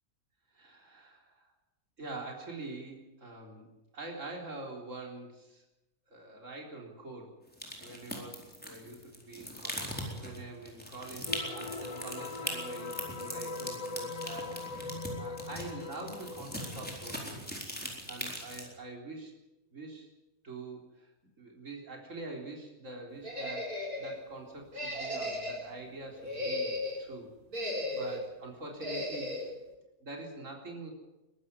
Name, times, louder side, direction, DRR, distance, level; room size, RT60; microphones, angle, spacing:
voice 1, 0.5-1.5 2.0-5.6 6.1-7.4 7.8-14.9 15.2-17.6 18.1-19.3 19.7-20.1 20.4-21.1 21.4-27.3 27.9-29.4 30.0-30.9, right 2 dB, 55° right, 0 dB, 4.2 m, -45 dB
sound 1, 7.5-18.7, equal, 5° left, 4.2 m, -41 dB
sound 2, 11.3-17.2, left 3 dB, 30° left, 0.8 m, -41 dB
sound 3, 23.2-24.2 24.7-25.7 26.2-27.0 27.5-28.3 28.8-29.5, left 1 dB, 85° right, 4.6 m, -35 dB
22.5 x 13.0 x 9.7 m, 1.0 s
omnidirectional pair, 1.5 m